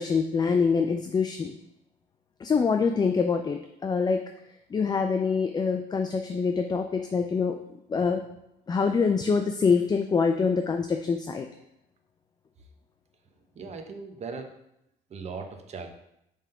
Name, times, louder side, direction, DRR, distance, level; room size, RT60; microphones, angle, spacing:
voice 1, 0.0-1.5 2.4-4.2 4.7-7.6 7.9-8.2 8.7-11.5, left 5 dB, 25° left, 6 dB, 0.4 m, -25 dB
voice 2, 13.5-14.5 15.1-15.9, right 4 dB, 40° right, 5 dB, 1.0 m, -38 dB
5.5 x 3.7 x 5.6 m, 0.80 s
cardioid pair, 110°, 17 cm